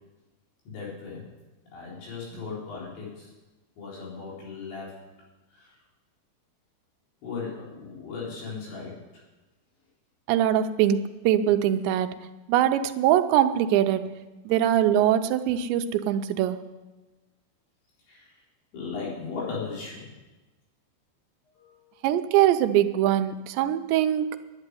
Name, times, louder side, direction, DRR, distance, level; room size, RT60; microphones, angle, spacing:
voice 1, 0.7-1.2 1.7-3.3 3.8-5.0 5.6-5.8 7.2-9.2 18.1-18.3 18.7-20.1 21.6-22.0, left 4 dB, 80° left, -5 dB, 6.4 m, -37 dB
voice 2, 10.3-12.1 12.5-14.1 14.5-16.6 22.0-24.4, right 11 dB, 80° right, 8 dB, 2.9 m, -22 dB
10.5 x 10.5 x 9.9 m, 1.1 s
omnidirectional pair, 5.1 m